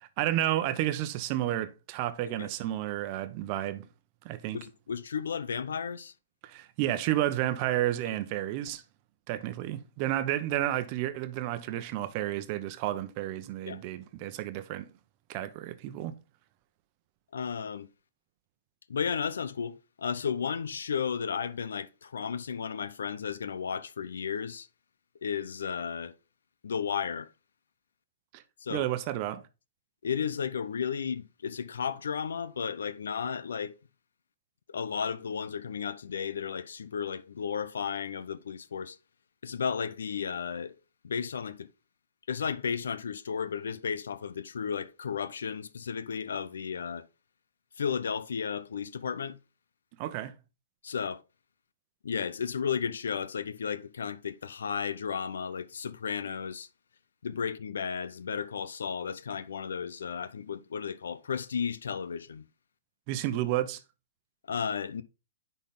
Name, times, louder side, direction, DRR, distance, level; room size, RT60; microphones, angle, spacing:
voice 1, 0.0-3.9 4.2-4.6 6.4-8.8 9.3-14.9 15.3-16.1 28.3-28.4 28.7-29.4 50.0-50.3 63.1-63.8, right 13 dB, 40° right, 0.9 m, -31 dB
voice 2, 4.5-6.1 13.7-13.8 17.3-17.9 18.9-24.7 25.2-26.2 26.6-27.3 28.6-28.9 30.0-33.8 34.7-39.0 39.4-40.8 41.0-41.7 42.3-47.1 47.8-49.4 50.8-51.2 52.0-56.7 57.2-62.4 64.5-65.0, left 7 dB, 80° left, 0.6 m, -34 dB
10.0 x 4.1 x 3.6 m
hypercardioid pair, 135°, 0 cm